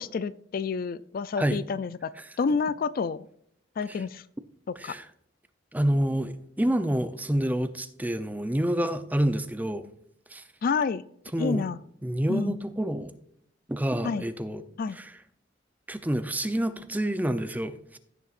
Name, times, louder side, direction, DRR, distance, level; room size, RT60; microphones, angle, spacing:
voice 1, 0.0-2.1 2.4-3.3 3.8-4.2 4.8-4.9 10.6-11.0 11.4-11.8 12.3-12.6 14.0-14.2 14.8-15.0, left 5 dB, 50° left, 0.4 m, -29 dB
voice 2, 4.8-5.1 5.7-9.9 10.3-10.4 11.3-11.7 12.0-13.1 13.7-14.6 14.9-15.2 15.9-18.0, right 1 dB, 10° right, 0.6 m, -28 dB
16.0 x 6.8 x 2.5 m
head